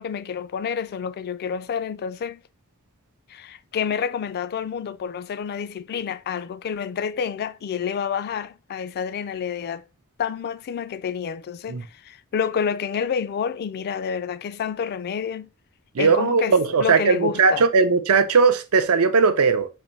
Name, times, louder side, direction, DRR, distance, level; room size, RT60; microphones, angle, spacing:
voice 1, 0.0-2.4 3.3-9.8 10.2-15.5 16.0-17.7, left 7 dB, 45° left, 0.3 m, -29 dB
voice 2, 15.9-19.7, right 5 dB, 75° right, 0.5 m, -18 dB
4.1 x 2.6 x 4.2 m
head